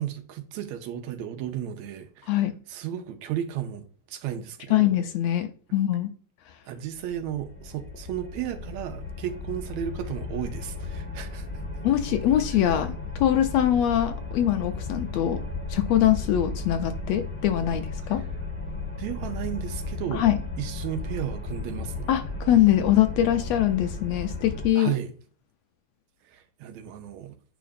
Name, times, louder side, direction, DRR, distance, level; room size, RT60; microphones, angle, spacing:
voice 1, 0.0-2.4 2.7-4.9 6.7-11.5 19.0-20.2 20.6-22.1 24.8-25.1 26.2-27.4, right 10 dB, 80° right, 2.0 m, -34 dB
voice 2, 4.7-6.1 11.8-15.4 15.7-18.2 20.1-20.4 22.1-24.9, left 12 dB, 75° left, 1.7 m, -23 dB
sound 1, 6.9-24.7, left 3 dB, 10° left, 0.5 m, -35 dB
9.1 x 5.0 x 2.5 m
omnidirectional pair, 3.3 m